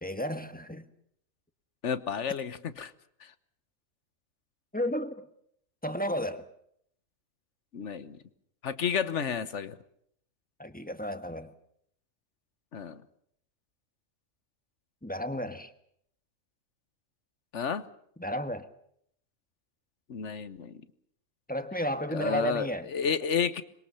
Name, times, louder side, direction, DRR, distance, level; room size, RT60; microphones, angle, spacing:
voice 1, 0.0-0.8 4.7-5.2 5.8-6.5 10.6-11.5 15.0-15.7 18.2-18.7 21.5-22.9, equal, 5° left, 1.4 m, -32 dB
voice 2, 1.8-2.9 7.7-8.2 8.6-9.8 12.7-13.0 17.5-17.9 20.1-20.8 22.1-23.6, left 7 dB, 65° left, 1.4 m, -31 dB
25.5 x 22.0 x 6.9 m
omnidirectional pair, 1.4 m